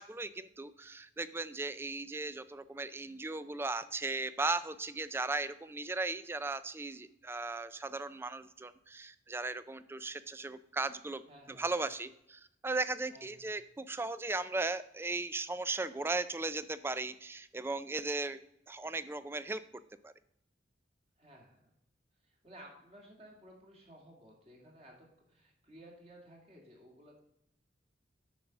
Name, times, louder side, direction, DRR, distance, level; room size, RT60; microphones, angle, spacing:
voice 1, 0.0-11.2 11.5-18.4 18.7-19.6 20.0-20.1, right 3 dB, 15° right, 15 dB, 0.3 m, -37 dB
voice 2, 11.3-11.7 13.1-13.4 21.2-21.6 22.2-24.9 25.3-27.2, right 1 dB, 35° right, -1 dB, 2.3 m, -56 dB
9.0 x 5.3 x 5.9 m, 0.80 s
head